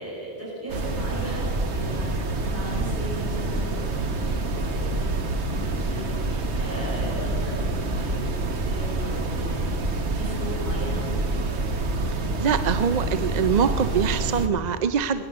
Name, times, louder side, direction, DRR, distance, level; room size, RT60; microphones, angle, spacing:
voice 1, 0.0-5.2 5.5-11.0, equal, 15° right, -7 dB, 5.1 m, -37 dB
sound 1, 0.7-14.5, right 2 dB, 80° right, 1.4 m, -27 dB
voice 2, 12.4-15.2, right 7 dB, 50° right, 11 dB, 0.5 m, -23 dB
19.5 x 9.9 x 6.7 m, 2.6 s
omnidirectional pair, 1.1 m